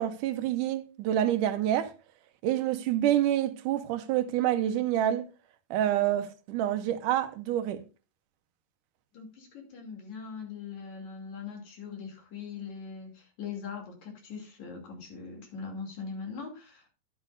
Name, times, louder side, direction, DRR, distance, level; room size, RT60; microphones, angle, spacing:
voice 1, 0.0-1.9 2.4-5.2 5.7-7.8, right 12 dB, 80° right, 2.3 m, -27 dB
voice 2, 9.1-16.9, left 5 dB, 60° left, 4.0 m, -41 dB
11.0 x 10.0 x 2.5 m
omnidirectional pair, 3.8 m